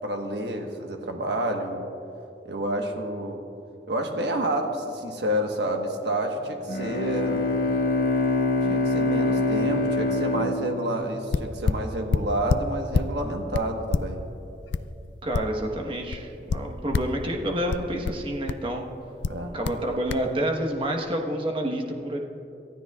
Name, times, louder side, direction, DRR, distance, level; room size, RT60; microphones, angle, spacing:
voice 1, 0.0-1.9 2.4-3.4 3.9-7.4 8.7-14.2 19.3-19.6, right 1 dB, 70° right, 3 dB, 1.3 m, -29 dB
Bowed string instrument, 6.7-11.9, left 2 dB, 50° left, 1.2 m, -25 dB
sound 1, 11.0-11.1 11.3-13.2 13.5-15.8 16.1-17.2 17.7-18.7 19.2-19.8 20.1-20.3, left 5 dB, 85° left, 0.4 m, -27 dB
voice 2, 15.2-18.8 19.5-22.2, right 1 dB, 30° right, 2 dB, 1.2 m, -28 dB
28.5 x 13.5 x 2.4 m, 2.8 s
head